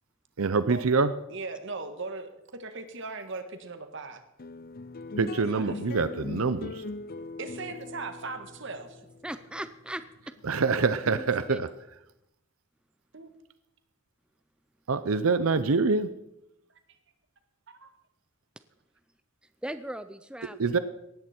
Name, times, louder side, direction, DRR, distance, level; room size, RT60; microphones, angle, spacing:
voice 1, 0.4-1.1 5.2-6.8 10.4-11.7 14.9-16.1 20.6-20.8, right 4 dB, 85° right, 13 dB, 0.7 m, -25 dB
voice 2, 1.3-4.2 5.5-5.8 7.4-9.0 13.1-13.3 16.9-17.0 17.7-17.9, right 3 dB, 60° right, 8 dB, 1.8 m, -39 dB
sound 1, 4.4-11.0, left 3 dB, 45° left, 0.6 m, -41 dB
voice 3, 9.2-10.0 11.1-11.6 19.6-20.8, right 1 dB, 5° right, 11 dB, 0.5 m, -38 dB
18.5 x 14.0 x 4.5 m, 0.85 s
head